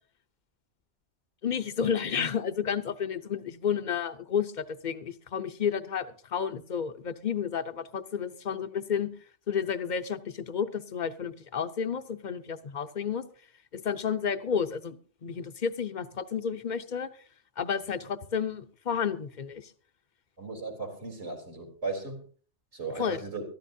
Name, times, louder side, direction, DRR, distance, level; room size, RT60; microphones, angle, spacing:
voice 1, 1.4-9.1 9.5-13.2 13.7-17.1 17.6-19.7 22.9-23.2, left 7 dB, 45° left, 10 dB, 0.9 m, -31 dB
voice 2, 20.4-22.2 22.7-23.4, right 4 dB, 70° right, 2 dB, 4.1 m, -36 dB
23.0 x 13.5 x 2.7 m, 0.42 s
omnidirectional pair, 1.2 m